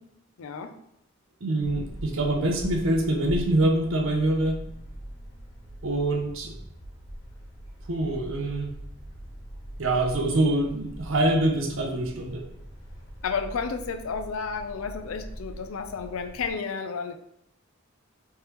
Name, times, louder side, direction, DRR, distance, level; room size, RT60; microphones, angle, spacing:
voice 1, 0.4-0.7 13.2-17.1, left 5 dB, 90° left, 7 dB, 0.4 m, -32 dB
voice 2, 1.4-4.6 5.8-6.5 7.8-8.7 9.8-12.5, right 1 dB, 75° right, 2 dB, 0.7 m, -25 dB
sound 1, 1.6-16.5, equal, 70° left, 1.1 m, -41 dB
3.3 x 3.3 x 3.0 m, 0.79 s
head